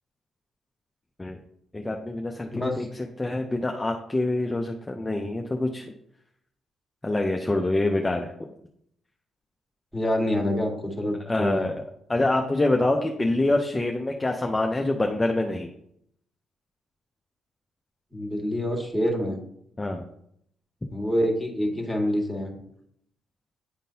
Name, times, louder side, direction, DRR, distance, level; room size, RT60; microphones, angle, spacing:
voice 1, 1.7-2.9 3.2-5.9 7.0-8.3 11.3-11.8 12.1-15.7 19.8-20.0, left 2 dB, 15° left, 2 dB, 0.6 m, -25 dB
voice 2, 2.5-2.9 9.9-11.7 18.1-19.4 20.9-22.5, equal, ahead, 1 dB, 1.7 m, -26 dB
10.0 x 3.7 x 2.8 m, 0.72 s
cardioid pair, 90°, 0 cm